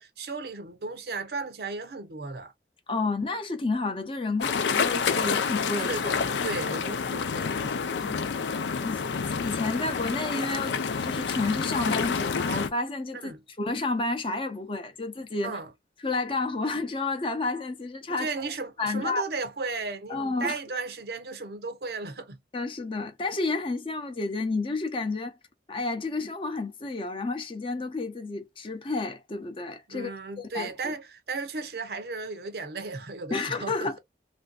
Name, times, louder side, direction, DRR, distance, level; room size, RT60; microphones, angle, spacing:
voice 1, 0.0-2.5 5.8-8.1 13.1-13.4 15.4-15.7 18.2-22.4 29.9-34.0, right 3 dB, 60° right, 0.7 m, -35 dB
voice 2, 2.9-5.9 8.0-8.3 8.6-10.8 11.0-15.6 16.0-18.3 18.8-19.2 20.1-20.6 22.5-25.4 25.7-30.9 33.3-34.0, left 3 dB, 30° left, 0.6 m, -31 dB
sound 1, 4.4-12.7, left 5 dB, 85° left, 0.4 m, -28 dB
3.3 x 2.6 x 2.3 m
head